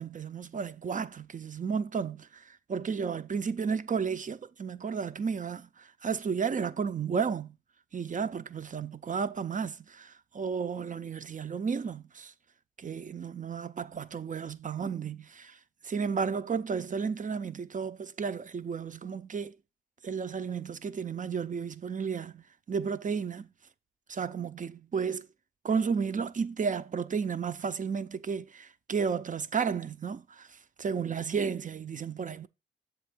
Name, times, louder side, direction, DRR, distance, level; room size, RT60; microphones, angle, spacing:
voice 1, 0.0-7.6 7.9-12.3 12.8-15.6 15.9-19.6 20.0-23.5 24.1-25.3 25.6-32.5, right 6 dB, 45° right, 0.6 m, -33 dB
7.2 x 3.5 x 5.0 m
cardioid pair, 50°, 19 cm